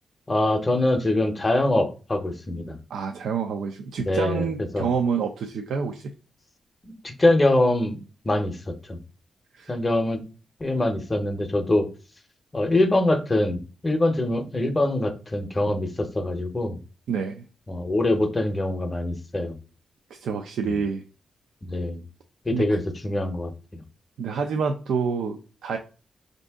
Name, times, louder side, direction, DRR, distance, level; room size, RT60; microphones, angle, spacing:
voice 1, 0.3-2.8 4.0-4.5 4.7-4.9 6.8-8.0 8.2-8.6 8.9-9.0 9.7-10.2 10.6-11.9 12.5-16.8 17.7-19.6 21.6-22.0 22.5-23.8, left 1 dB, 20° left, 7 dB, 0.6 m, -24 dB
voice 2, 2.9-6.2 9.5-9.7 17.1-17.4 20.1-21.0 22.5-22.8 24.2-25.8, right 6 dB, 90° right, 4 dB, 0.4 m, -28 dB
5.2 x 2.6 x 3.4 m, 0.34 s
wide cardioid pair, 130°, 0 cm